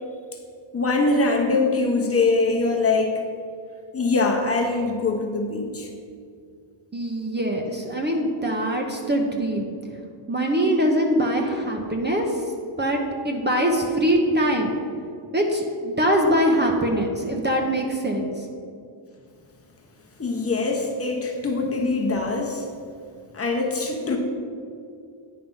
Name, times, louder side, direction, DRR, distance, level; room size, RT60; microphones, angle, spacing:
voice 1, 0.7-3.2 3.9-5.9 20.2-22.7 23.3-24.2, left 3 dB, 30° left, 1 dB, 1.0 m, -23 dB
voice 2, 6.9-9.7 10.3-12.4 12.8-13.0 13.2-14.7 15.3-18.5, equal, 20° right, 1 dB, 0.8 m, -23 dB
9.5 x 4.7 x 5.5 m, 2.3 s
cardioid pair, 135°, 50 cm